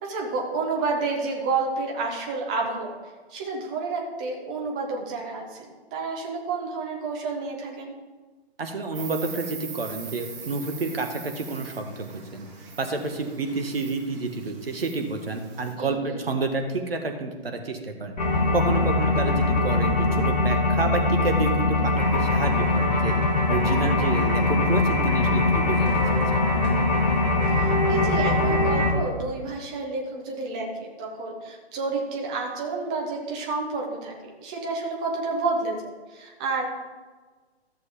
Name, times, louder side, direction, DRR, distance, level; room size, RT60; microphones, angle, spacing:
voice 1, 0.0-2.9 3.3-7.9 15.8-16.2 27.6-35.8 36.1-36.7, right 3 dB, 5° right, 0 dB, 0.4 m, -30 dB
voice 2, 8.6-12.5 12.8-18.2 18.5-23.1 23.5-26.5, right 3 dB, 65° right, 5 dB, 1.5 m, -29 dB
Insect, 8.9-15.7, right 6 dB, 30° right, 1.7 m, -42 dB
sound 1, 18.2-28.9, left 2 dB, 40° left, 1.9 m, -22 dB
13.5 x 6.7 x 3.6 m, 1.4 s
figure-of-eight pair, 130°, 32 cm